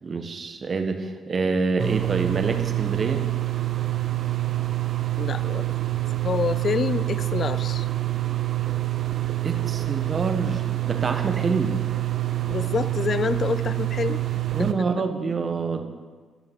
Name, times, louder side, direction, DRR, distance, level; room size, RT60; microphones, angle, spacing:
voice 1, 0.0-3.2 9.4-11.8 14.5-15.8, right 4 dB, 45° right, 6 dB, 1.3 m, -26 dB
sound 1, 1.8-14.7, right 16 dB, 65° right, 0.8 m, -26 dB
voice 2, 5.2-5.7 6.2-7.9 12.5-14.2 14.6-14.9, left 5 dB, 50° left, 15 dB, 0.4 m, -27 dB
12.5 x 5.8 x 7.6 m, 1.4 s
supercardioid pair, 65°, 0 cm